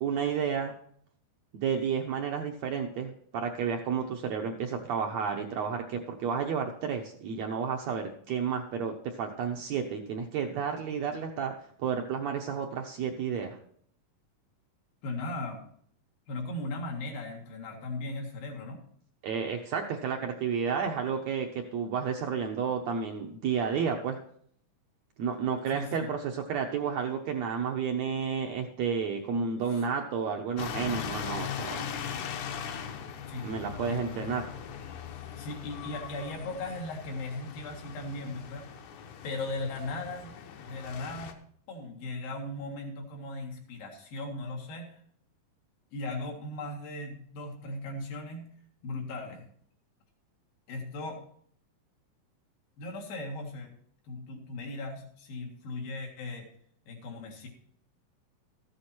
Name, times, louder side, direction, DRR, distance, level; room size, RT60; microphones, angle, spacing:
voice 1, 0.0-0.7 1.5-11.5 11.8-13.6 19.2-24.2 25.2-31.9 33.4-34.5, right 6 dB, 75° right, 3 dB, 1.6 m, -31 dB
voice 2, 15.0-15.6 16.3-18.8 25.7-26.1 29.7-29.8 33.3-34.2 35.4-38.7 39.2-41.4 41.7-45.0 45.9-48.5 48.8-49.5 50.7-51.2 52.8-53.8 54.1-56.5 56.9-57.5, left 2 dB, 90° left, 1 dB, 3.7 m, -38 dB
sound 1, 30.6-41.3, left 8 dB, 70° left, 2.1 m, -40 dB
14.0 x 8.1 x 4.3 m, 0.62 s
omnidirectional pair, 4.0 m